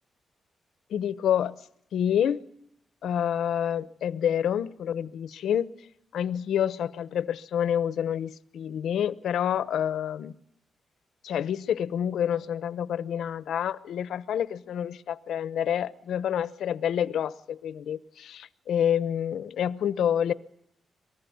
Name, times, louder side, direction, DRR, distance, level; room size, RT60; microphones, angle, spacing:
voice 1, 0.9-1.6 1.9-2.5 3.0-5.7 6.1-10.3 11.2-20.3, left 9 dB, 90° left, 0.9 m, -28 dB
23.5 x 19.0 x 9.4 m
cardioid pair, 95°, 0 cm